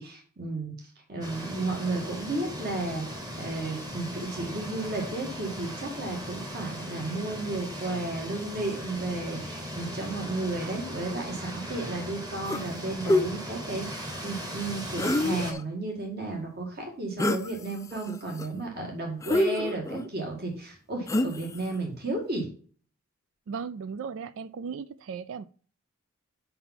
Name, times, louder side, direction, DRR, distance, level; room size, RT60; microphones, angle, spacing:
voice 1, 0.0-22.5, right 2 dB, 45° right, 2.1 m, -33 dB
sound 1, 1.2-15.5, equal, 20° right, 1.4 m, -38 dB
sound 2, 12.5-12.7 13.1-13.3 15.0-15.6 17.2-17.5 17.9-18.5 19.2-20.1 21.1-21.6, left 1 dB, 15° left, 0.4 m, -26 dB
voice 2, 23.5-25.4, right 6 dB, 60° right, 0.3 m, -36 dB
5.7 x 5.6 x 5.8 m
head